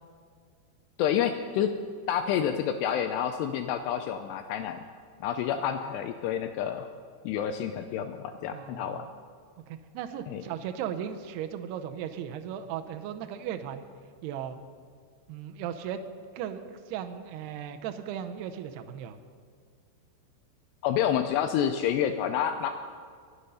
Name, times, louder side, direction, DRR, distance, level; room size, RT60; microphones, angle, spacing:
voice 1, 1.0-1.7 2.1-4.8 5.2-6.9 7.2-9.1 10.3-10.4 20.8-22.7, left 9 dB, 85° left, 7 dB, 2.4 m, -28 dB
voice 2, 8.5-9.0 9.7-13.9 14.2-14.6 15.3-16.0 16.3-19.2, right 9 dB, 80° right, 8 dB, 2.3 m, -36 dB
23.0 x 8.0 x 5.5 m, 2.1 s
omnidirectional pair, 5.5 m